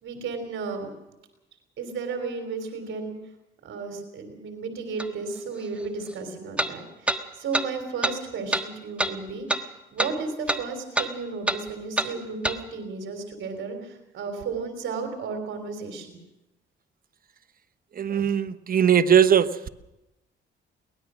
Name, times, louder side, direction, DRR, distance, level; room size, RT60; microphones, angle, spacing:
voice 1, 0.0-0.9 1.8-3.1 3.6-16.2, right 4 dB, 75° right, 5 dB, 3.5 m, -34 dB
sound 1, 5.0-5.1 6.6-6.7 7.1-7.2 7.5-7.7 8.0-8.2 8.5-8.7 9.0-9.1 9.5-9.6 10.0-10.1 10.5-10.6 10.9-11.1 11.5-11.6 12.0-12.1 12.4-12.6, right 1 dB, 5° right, 1.4 m, -25 dB
voice 2, 17.9-19.7, right 8 dB, 45° right, 11 dB, 1.1 m, -20 dB
23.0 x 19.0 x 6.3 m, 0.95 s
cardioid pair, 90°, 20 cm